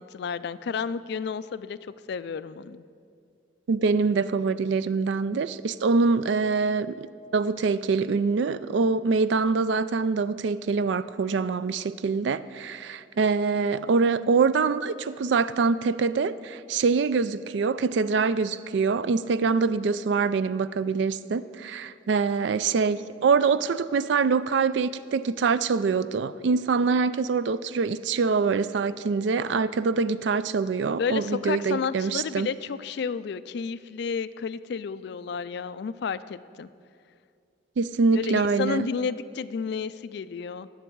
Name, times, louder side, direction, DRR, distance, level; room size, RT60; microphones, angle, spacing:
voice 1, 0.0-1.8 2.1-2.8 31.0-36.7 38.1-40.7, left 5 dB, 55° left, 15 dB, 0.3 m, -31 dB
voice 2, 3.7-7.1 7.3-32.5 37.8-38.9, right 4 dB, 65° right, 16 dB, 0.3 m, -24 dB
19.0 x 7.2 x 4.6 m, 2.3 s
head